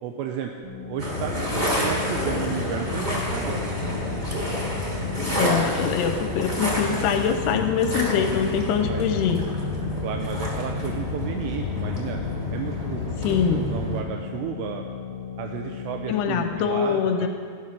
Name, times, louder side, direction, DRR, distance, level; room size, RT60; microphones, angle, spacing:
voice 1, 0.0-1.3 1.7-3.7 8.9-9.0 10.0-12.2 12.5-14.8 15.4-17.3, right 8 dB, 80° right, 4 dB, 2.8 m, -33 dB
sound 1, 0.6-16.6, left 8 dB, 30° right, 1.8 m, -37 dB
sound 2, 1.0-14.0, left 1 dB, 15° right, 1.8 m, -28 dB
voice 2, 5.4-9.4 13.2-13.6 16.1-17.3, left 7 dB, 80° left, 6 dB, 2.6 m, -24 dB
15.0 x 13.0 x 6.2 m, 2.1 s
omnidirectional pair, 5.1 m